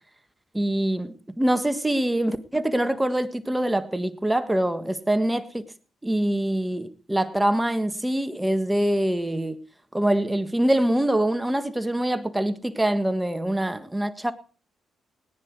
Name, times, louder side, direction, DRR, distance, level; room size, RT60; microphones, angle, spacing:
voice 1, 0.5-5.6 6.0-9.6 9.9-14.3, right 1 dB, 10° right, 1.5 m, -24 dB
18.0 x 10.0 x 4.7 m
supercardioid pair, 55°, 0 cm